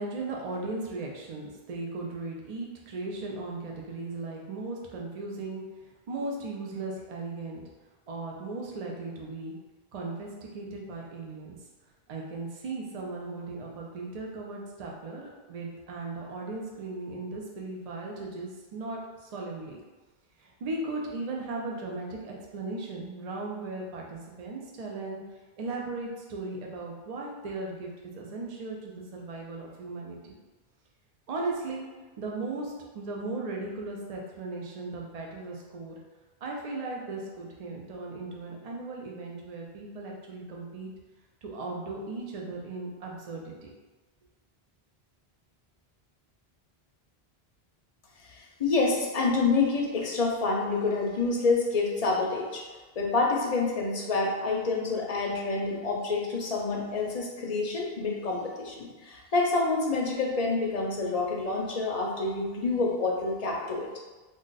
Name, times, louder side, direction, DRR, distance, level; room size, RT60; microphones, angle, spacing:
voice 1, 0.0-5.6 6.1-7.6 8.1-9.5 9.9-11.6 12.1-19.8 20.4-25.2 25.6-30.4 31.3-31.8 32.2-36.0 36.4-40.9 41.4-43.7, right 3 dB, 50° right, -1 dB, 0.5 m, -37 dB
voice 2, 48.3-52.6 53.0-63.9, left 3 dB, 50° left, -1 dB, 0.5 m, -27 dB
2.5 x 2.3 x 3.9 m, 1.2 s
omnidirectional pair, 1.0 m